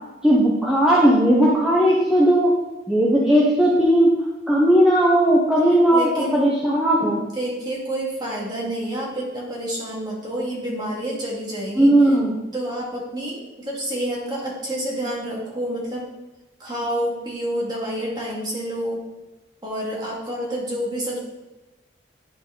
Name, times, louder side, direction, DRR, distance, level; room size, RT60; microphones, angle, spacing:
voice 1, 0.2-2.5 2.9-4.1 4.5-7.2 11.8-12.4, right 1 dB, 5° right, -6 dB, 0.8 m, -17 dB
voice 2, 5.6-6.4 7.0-12.1 12.5-16.1 16.6-19.0 19.6-21.2, right 1 dB, 20° right, -4 dB, 2.0 m, -29 dB
10.5 x 4.1 x 3.8 m, 1.1 s
head